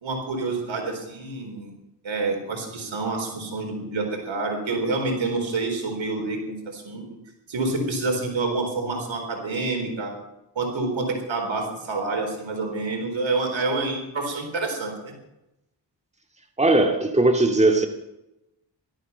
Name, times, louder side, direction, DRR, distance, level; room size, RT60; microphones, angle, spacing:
voice 1, 0.0-1.7 2.0-7.0 7.5-10.1 10.6-15.1, right 3 dB, 90° right, 3 dB, 4.2 m, -28 dB
voice 2, 16.6-17.9, right 2 dB, 15° right, 4 dB, 2.2 m, -19 dB
17.0 x 13.5 x 5.7 m, 0.91 s
cardioid pair, 60°, 45 cm